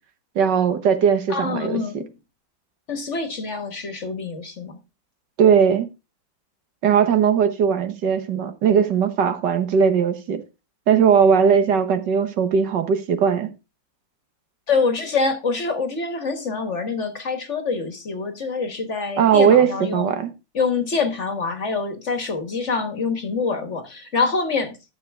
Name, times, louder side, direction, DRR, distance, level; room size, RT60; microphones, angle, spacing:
voice 1, 0.4-1.8 5.4-5.9 6.8-10.4 10.9-13.5 19.2-20.3, right 7 dB, 70° right, 1.8 m, -18 dB
voice 2, 1.3-2.1 2.9-4.8 14.7-20.1 20.5-24.9, left 4 dB, 40° left, 1.5 m, -25 dB
12.0 x 7.2 x 3.5 m
omnidirectional pair, 2.0 m